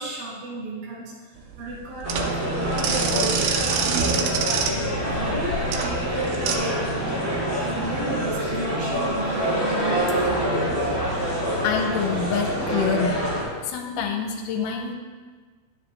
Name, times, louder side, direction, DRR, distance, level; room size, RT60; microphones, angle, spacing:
voice 1, 0.0-4.4 5.0-10.3 14.6-14.8, right 2 dB, 70° right, -4 dB, 3.2 m, -34 dB
sound 1, 1.4-6.6, right 6 dB, 85° right, 2.6 m, -27 dB
sound 2, 2.0-13.4, equal, 15° right, 1.2 m, -26 dB
voice 2, 11.6-13.2 13.6-14.9, left 6 dB, 80° left, 3 dB, 2.6 m, -26 dB
10.0 x 7.5 x 3.2 m, 1.4 s
omnidirectional pair, 4.5 m